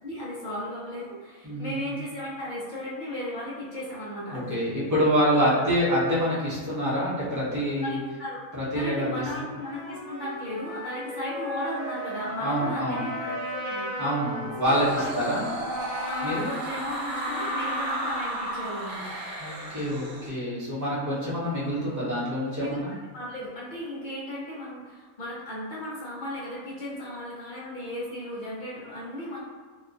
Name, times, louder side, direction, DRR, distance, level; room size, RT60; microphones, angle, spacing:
voice 1, 0.0-4.6 5.2-5.3 7.7-8.4 8.7-13.9 14.7-15.1 15.5-15.6 16.0-19.0 22.6-22.8 23.1-29.4, left 1 dB, 45° left, -7 dB, 0.6 m, -35 dB
voice 2, 1.4-1.9 4.3-8.0 8.5-9.1 12.4-13.1 14.0-15.4 16.2-16.5 19.4-22.9, equal, 15° right, -10 dB, 0.7 m, -26 dB
Wind instrument woodwind instrument, 9.5-15.7, left 1 dB, 20° left, 1.3 m, -38 dB
Trumpet, 11.6-18.8, equal, 60° left, 1.1 m, -38 dB
sound 1, 14.6-20.3, right 1 dB, 60° right, 0.9 m, -34 dB
2.8 x 2.3 x 2.5 m, 1.5 s
omnidirectional pair, 1.5 m